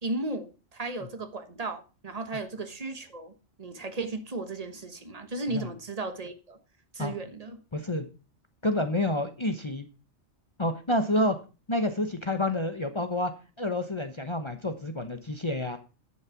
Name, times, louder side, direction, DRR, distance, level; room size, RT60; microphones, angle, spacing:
voice 1, 0.0-3.3 3.6-6.6 6.9-7.6, right 2 dB, 35° right, 1.4 m, -35 dB
voice 2, 7.7-8.1 8.6-9.9 10.6-11.4 11.7-13.3 13.6-15.8, left 1 dB, 25° left, 0.9 m, -28 dB
11.0 x 6.5 x 5.8 m
omnidirectional pair, 1.2 m